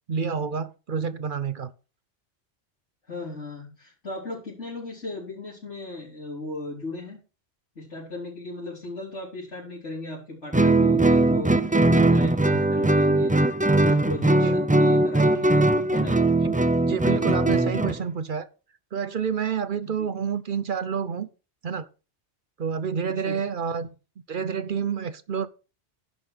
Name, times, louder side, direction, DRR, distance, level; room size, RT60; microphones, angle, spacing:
voice 1, 0.1-1.7 14.4-14.5 16.4-16.5 16.9-18.5 18.9-21.3 21.6-21.9 22.6-23.9 24.3-25.5, right 6 dB, 50° right, 0.8 m, -28 dB
voice 2, 3.1-7.2 7.8-13.4 13.8-15.6 15.9-16.2 20.0-20.1 23.1-23.4, left 2 dB, 80° left, 4.2 m, -36 dB
Guitar, 10.5-18.0, right 2 dB, 10° right, 0.4 m, -20 dB
11.0 x 5.4 x 6.5 m
omnidirectional pair, 1.2 m